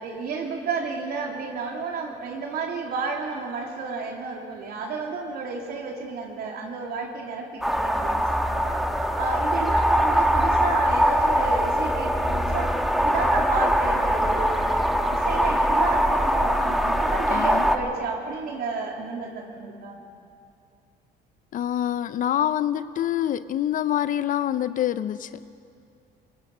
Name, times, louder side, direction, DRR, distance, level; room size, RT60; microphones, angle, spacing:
voice 1, 0.0-8.8 9.2-12.7 13.0-20.0, right 4 dB, 65° right, 1 dB, 2.9 m, -32 dB
sound 1, 7.6-17.8, equal, ahead, 1.4 m, -22 dB
voice 2, 17.3-17.7 21.5-25.5, left 11 dB, 50° left, 14 dB, 0.5 m, -26 dB
23.0 x 21.0 x 5.5 m, 2.5 s
cardioid pair, 110°, 17 cm